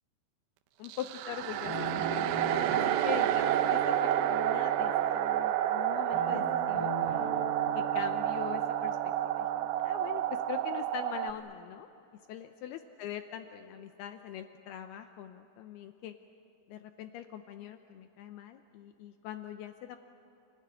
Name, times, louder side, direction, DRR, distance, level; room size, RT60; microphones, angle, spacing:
voice 1, 0.8-6.9 7.7-9.0 9.3-11.9 12.3-16.1 16.7-20.0, left 10 dB, 85° left, 7 dB, 2.3 m, -42 dB
sound 1, 0.8-11.3, right 12 dB, 80° right, 2.6 m, -30 dB
Guitar, 1.7-5.4 6.1-10.8, right 2 dB, 30° left, 6.8 m, -41 dB
29.0 x 18.5 x 9.9 m, 2.9 s
omnidirectional pair, 5.5 m